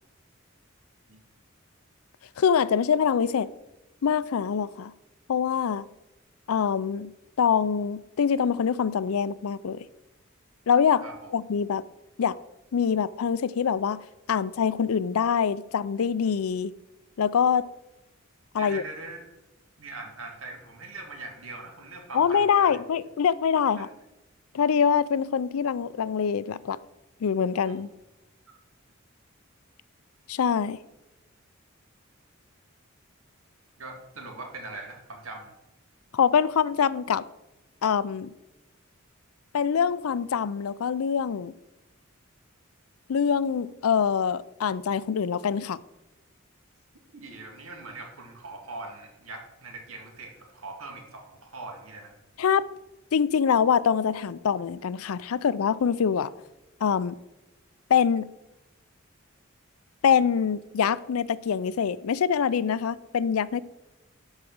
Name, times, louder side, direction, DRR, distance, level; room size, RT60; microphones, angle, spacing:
voice 1, 2.4-3.5 4.0-4.9 5.3-5.8 6.5-7.1 7.4-9.8 10.7-11.0 11.3-11.8 12.2-12.4 12.7-14.0 14.3-16.7 17.2-17.7 18.5-18.8 22.1-23.9 24.5-26.8 27.2-27.9 30.3-30.8 36.1-37.2 37.8-38.3 39.5-41.5 43.1-45.8 52.4-52.7 53.1-56.3 56.8-57.1 57.9-58.3 60.0-63.6, left 7 dB, 85° left, 18 dB, 0.4 m, -24 dB
voice 2, 11.0-11.3 18.5-19.3 19.8-22.8 23.8-23.9 27.6-27.9 28.5-28.6 33.8-35.5 47.1-52.1, right 3 dB, 80° right, 2 dB, 2.2 m, -41 dB
12.0 x 4.9 x 6.1 m, 0.99 s
head